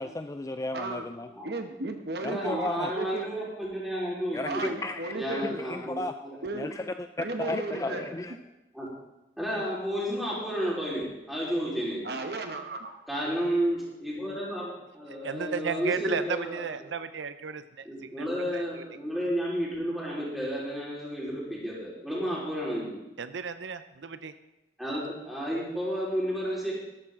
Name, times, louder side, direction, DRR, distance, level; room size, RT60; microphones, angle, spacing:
voice 1, 0.0-1.3 2.2-2.9 4.3-6.1 6.5-8.4, left 2 dB, 15° left, 8 dB, 0.3 m, -34 dB
voice 2, 0.7-1.0 1.4-3.3 4.4-5.6 6.4-6.7 7.2-8.0 12.0-13.0, right 3 dB, 60° right, 6 dB, 1.1 m, -35 dB
voice 3, 2.3-4.7 5.1-6.4 7.7-8.1 8.7-8.9 9.4-12.0 13.1-16.9 17.8-22.9 24.8-26.7, equal, ahead, -6 dB, 4.1 m, -32 dB
voice 4, 15.2-18.8 23.2-24.3, right 5 dB, 90° right, 12 dB, 0.6 m, -34 dB
13.0 x 13.0 x 3.7 m, 0.97 s
head